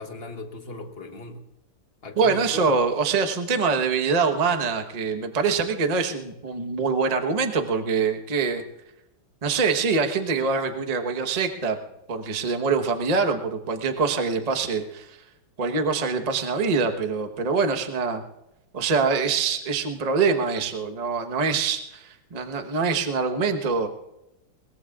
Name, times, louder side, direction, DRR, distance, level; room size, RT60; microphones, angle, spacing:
voice 1, 0.0-1.5 2.0-2.7, left 2 dB, 35° left, 5 dB, 1.1 m, -38 dB
voice 2, 2.2-8.6 9.4-11.8 12.1-15.2 15.6-18.2 18.7-23.9, right 5 dB, 30° right, 6 dB, 0.7 m, -24 dB
22.0 x 21.0 x 2.4 m, 0.90 s
omnidirectional pair, 2.4 m